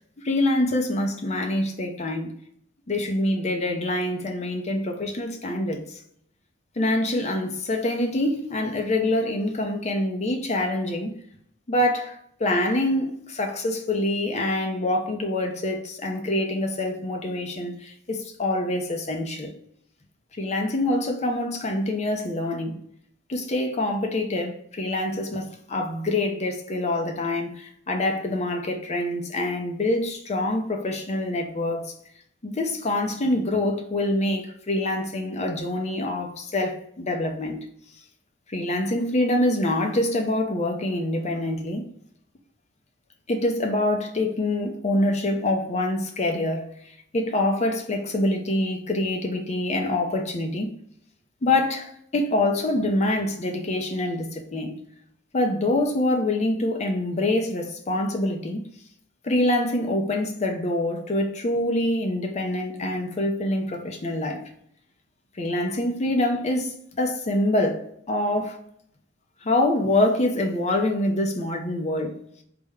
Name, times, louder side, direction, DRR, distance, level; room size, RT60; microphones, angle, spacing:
voice 1, 0.2-2.3 2.9-6.0 6.8-11.2 11.7-19.5 20.3-22.8 23.3-31.9 32.4-37.7 38.5-41.9 43.3-50.8 51.4-54.8 55.3-58.7 59.2-64.5 65.4-68.6 69.4-72.2, left 1 dB, 35° left, 0.6 m, -25 dB
3.4 x 2.1 x 3.4 m
head